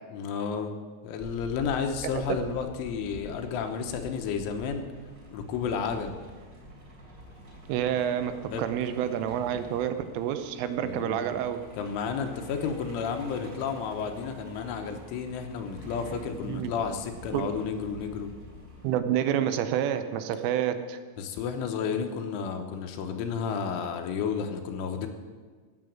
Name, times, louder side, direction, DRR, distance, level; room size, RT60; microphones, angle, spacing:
voice 1, 0.1-0.8 1.0-4.9 5.3-6.2 8.5-8.6 10.8-11.3 11.8-18.3 21.2-25.1, left 6 dB, 80° left, 6 dB, 3.4 m, -32 dB
Truck, 1.2-19.0, equal, 25° right, 2.2 m, -47 dB
voice 2, 7.7-11.6 16.5-16.7 17.3-17.5 18.8-21.0, right 10 dB, 90° right, 10 dB, 3.3 m, -28 dB
17.0 x 6.9 x 7.4 m, 1.5 s
omnidirectional pair, 5.8 m